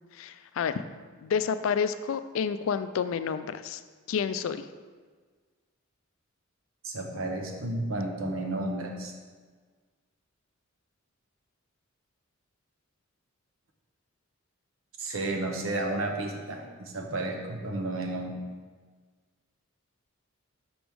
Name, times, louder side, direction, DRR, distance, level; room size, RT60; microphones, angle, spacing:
voice 1, 0.1-0.8 1.2-3.8 4.1-4.7, left 6 dB, 75° left, 12 dB, 0.3 m, -29 dB
voice 2, 6.8-9.1 15.0-18.4, right 2 dB, 85° right, 2 dB, 0.9 m, -32 dB
6.1 x 6.0 x 3.5 m, 1.5 s
head